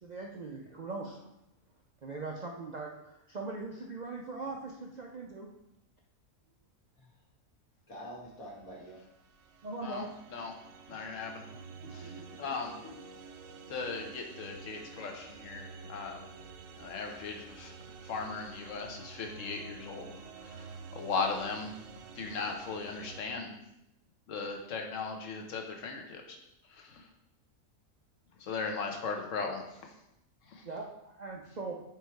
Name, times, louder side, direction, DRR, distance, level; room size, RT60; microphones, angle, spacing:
voice 1, 0.0-1.3 2.0-5.5 9.6-10.1 30.6-31.8, right 3 dB, 55° right, 0 dB, 0.4 m, -40 dB
voice 2, 7.9-9.0 10.4-10.5 12.0-12.4 30.4-30.7, equal, 85° left, -4 dB, 2.1 m, -48 dB
sound 1, 8.9-23.2, right 5 dB, 80° right, 1.0 m, -49 dB
voice 3, 10.9-11.4 12.4-12.7 13.7-16.2 16.8-17.7 18.0-20.1 20.4-21.7 22.1-23.5 24.3-26.4 26.7-27.0 28.4-29.6 30.5-30.6, left 4 dB, 65° left, 3 dB, 1.2 m, -37 dB
4.9 x 4.7 x 4.5 m, 0.86 s
omnidirectional pair, 1.4 m